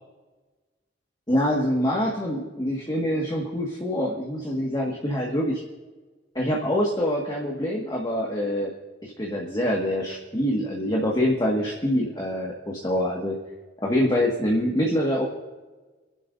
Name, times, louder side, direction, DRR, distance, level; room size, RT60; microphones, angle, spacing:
voice 1, 1.3-5.6 6.4-8.7 9.0-13.4 13.8-15.3, equal, 25° left, -2 dB, 1.7 m, -25 dB
29.5 x 11.0 x 2.7 m, 1.3 s
head